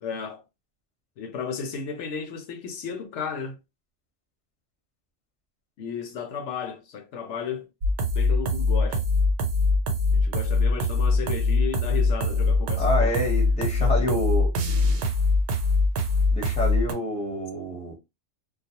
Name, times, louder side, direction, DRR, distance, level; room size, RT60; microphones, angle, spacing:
voice 1, 0.0-0.4 1.2-3.6 5.8-7.6 8.1-9.0 10.1-13.2 13.8-14.1, left 6 dB, 80° left, 0.9 m, -34 dB
sound 1, 7.8-16.9, left 3 dB, 80° right, 0.9 m, -23 dB
voice 2, 12.8-14.5 16.3-17.9, equal, 5° left, 0.8 m, -28 dB
2.3 x 2.1 x 2.8 m
omnidirectional pair, 1.2 m